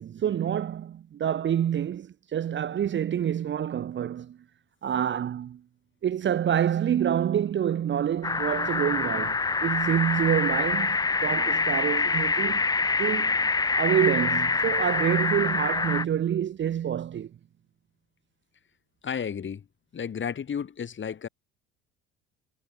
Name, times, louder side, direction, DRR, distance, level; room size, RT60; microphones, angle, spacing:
voice 1, 0.0-4.4 4.8-5.6 6.0-12.6 13.0-13.3 13.8-17.3, right 9 dB, 35° right, 1.0 m, -27 dB
sound 1, 8.2-16.0, left 4 dB, 10° left, 0.6 m, -26 dB
voice 2, 19.0-19.7 19.9-21.3, left 7 dB, 35° left, 5.6 m, -32 dB
hypercardioid pair, 70°, 32 cm